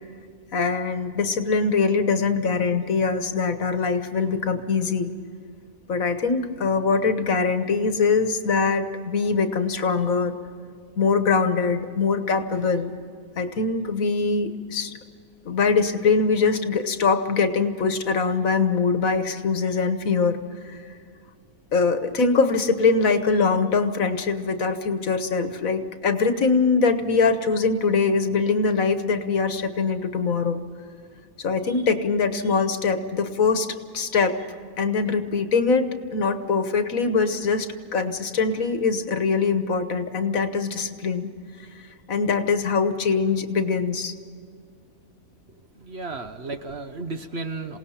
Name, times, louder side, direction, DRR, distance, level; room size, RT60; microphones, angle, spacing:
voice 1, 0.5-5.1 5.9-10.3 11.0-12.9 13.3-14.9 15.4-20.8 21.7-30.6 31.4-33.7 33.9-34.4 34.8-41.3 42.1-44.1, left 4 dB, 65° left, 8 dB, 1.6 m, -23 dB
voice 2, 45.8-47.8, right 3 dB, 50° right, 8 dB, 1.2 m, -33 dB
27.5 x 18.0 x 5.8 m, 2.3 s
omnidirectional pair, 1.5 m